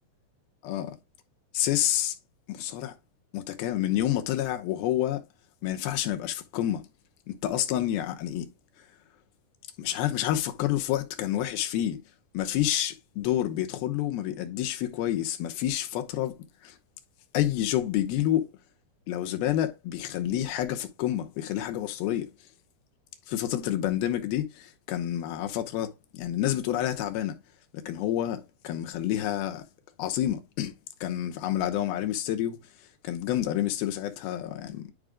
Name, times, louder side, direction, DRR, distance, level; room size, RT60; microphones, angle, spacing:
voice 1, 1.5-2.1 2.5-2.9 3.3-5.2 5.6-6.8 7.3-8.5 9.8-12.0 12.3-16.4 16.6-16.7 17.3-18.5 19.1-22.3 23.3-27.4 27.9-29.6 30.0-30.7 31.0-32.6 33.0-34.9, left 12 dB, 85° left, 2.8 m, -28 dB
10.0 x 5.0 x 2.3 m
omnidirectional pair, 4.4 m